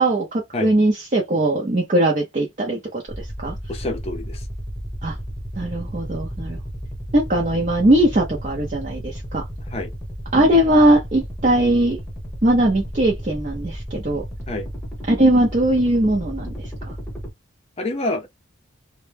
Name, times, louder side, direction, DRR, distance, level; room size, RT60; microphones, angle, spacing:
voice 1, 0.0-3.5 5.0-5.2 5.6-6.6 7.1-9.4 10.3-12.0 12.4-14.2 15.1-16.5, right 1 dB, 35° right, 0.5 m, -19 dB
sound 1, 3.1-17.3, equal, 5° left, 0.9 m, -33 dB
voice 2, 3.7-4.4 9.7-9.9 14.5-14.7 17.8-18.3, left 2 dB, 30° left, 0.5 m, -27 dB
2.1 x 2.0 x 3.2 m
head